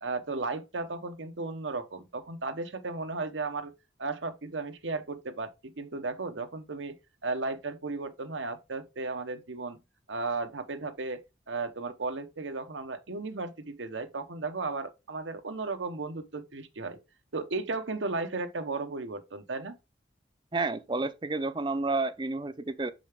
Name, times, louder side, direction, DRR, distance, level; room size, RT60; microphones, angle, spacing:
voice 1, 0.0-3.7 4.0-7.0 7.2-9.8 10.1-17.0 17.3-19.8, right 3 dB, 90° right, 0.9 m, -35 dB
voice 2, 20.5-22.9, right 3 dB, 25° right, 0.5 m, -30 dB
6.7 x 5.1 x 3.4 m
head